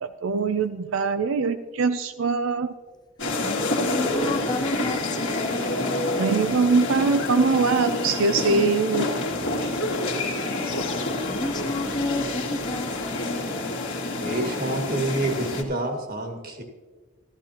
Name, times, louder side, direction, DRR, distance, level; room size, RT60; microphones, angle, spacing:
voice 1, 0.0-2.7 6.1-9.1 9.6-9.7, right 4 dB, 70° right, 0.5 m, -23 dB
sound 1, 3.2-15.6, left 2 dB, 60° left, 2.0 m, -28 dB
voice 2, 3.4-6.1 11.3-13.8, left 2 dB, 20° left, 0.5 m, -32 dB
sound 2, 9.8-11.1 11.5-11.9, equal, 85° left, 1.8 m, -33 dB
voice 3, 14.2-16.6, right 2 dB, 45° right, 1.8 m, -28 dB
13.5 x 13.5 x 2.9 m
head